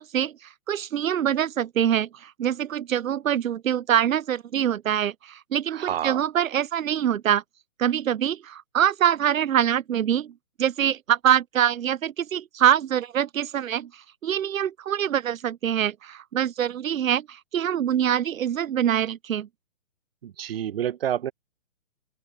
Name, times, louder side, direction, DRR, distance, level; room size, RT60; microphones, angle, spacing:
voice 1, 0.0-7.4 7.8-10.3 10.6-19.5, right 10 dB, 90° right, 0.5 m, -24 dB
voice 2, 5.7-6.2 20.2-21.3, right 10 dB, 50° right, 0.9 m, -28 dB
open air
hypercardioid pair, 145°, 39 cm